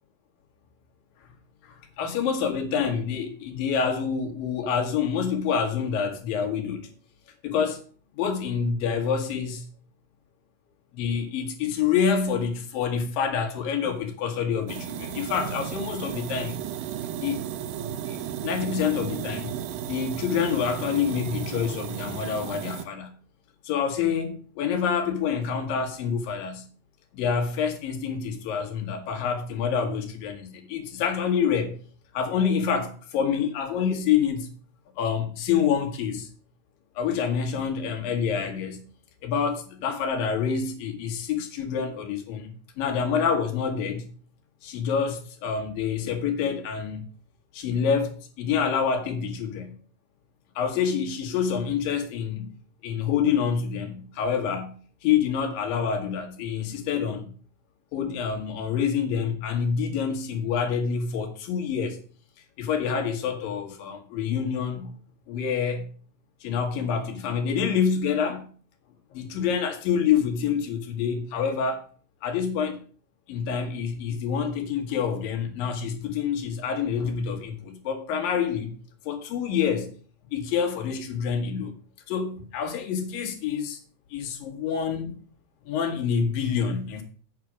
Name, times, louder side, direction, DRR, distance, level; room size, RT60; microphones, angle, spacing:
voice 1, 1.6-6.9 7.4-7.8 8.2-9.7 10.9-16.6 17.2-17.4 18.1-19.5 19.9-23.1 23.6-26.7 27.1-31.8 32.1-34.5 35.0-36.3 37.0-38.8 39.2-44.1 44.6-47.0 47.5-49.7 50.6-52.5 52.8-57.3 57.9-62.0 62.6-64.9 65.3-65.9 66.4-68.5 69.1-71.9 72.2-72.8 73.3-78.7 79.0-79.9 80.3-81.7 82.1-83.8 84.1-85.2 85.6-87.0, left 7 dB, 75° left, 3.0 m, -27 dB
sound 1, 14.7-22.8, right 10 dB, 85° right, 2.5 m, -34 dB
8.5 x 6.2 x 6.0 m
omnidirectional pair, 4.1 m